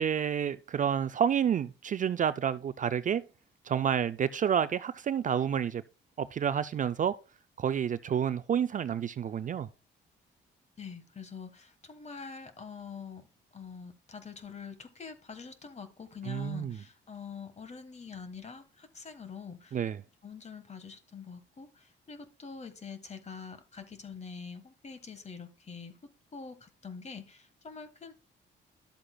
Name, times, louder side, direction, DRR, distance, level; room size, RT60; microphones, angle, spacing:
voice 1, 0.0-3.2 3.7-5.8 6.2-7.1 7.6-9.7 16.3-16.8 19.7-20.0, right 8 dB, 40° right, 0.4 m, -29 dB
voice 2, 10.8-13.3 13.5-19.8 20.2-26.0 26.3-28.1, left 5 dB, 35° left, 1.5 m, -45 dB
11.5 x 7.6 x 2.3 m
cardioid pair, 90°, 20 cm